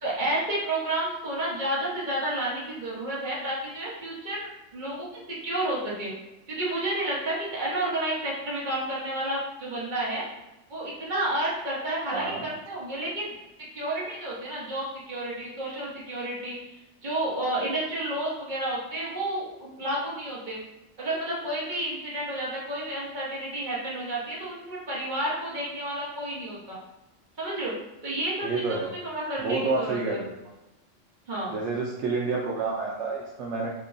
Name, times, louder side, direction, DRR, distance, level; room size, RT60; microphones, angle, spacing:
voice 1, 0.0-4.5 4.7-6.1 6.5-10.2 10.7-13.3 13.7-20.6 21.0-26.8 27.4-27.7 28.0-28.8 29.0-30.2 31.3-31.6, right 1 dB, 40° right, -6 dB, 1.2 m, -31 dB
voice 2, 12.1-12.5 28.4-28.9 29.4-30.3 31.5-33.7, right 3 dB, 70° right, -4 dB, 0.9 m, -29 dB
5.7 x 2.2 x 2.6 m, 0.98 s
omnidirectional pair, 1.2 m